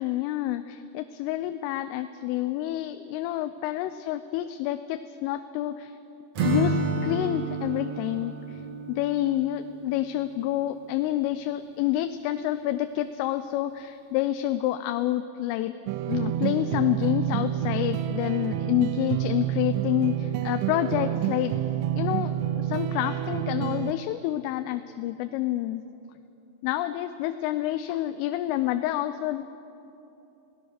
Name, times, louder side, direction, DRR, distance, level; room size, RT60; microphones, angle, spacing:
voice 1, 0.0-5.9 6.4-8.6 8.9-15.7 16.1-21.6 21.9-25.8 26.6-29.5, left 13 dB, 85° left, 10 dB, 3.2 m, -28 dB
Acoustic guitar / Strum, 6.3-10.3, right 3 dB, 50° right, 2.1 m, -30 dB
sound 1, 15.9-23.9, right 11 dB, 85° right, 2.4 m, -28 dB
29.5 x 18.0 x 6.5 m, 2.9 s
omnidirectional pair, 5.6 m